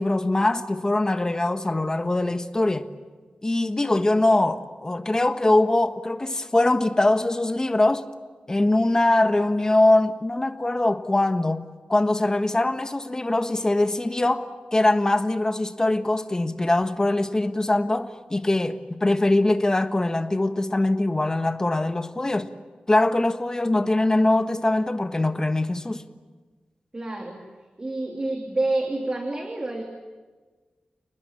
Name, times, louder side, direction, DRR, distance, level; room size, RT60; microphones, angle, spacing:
voice 1, 0.0-2.9 3.4-8.0 8.5-22.5 22.9-26.0, left 2 dB, 25° left, 1.4 m, -22 dB
voice 2, 26.9-27.4 27.8-29.8, right 2 dB, 30° right, 3.0 m, -28 dB
29.0 x 20.5 x 8.9 m
wide cardioid pair, 115°, 3 cm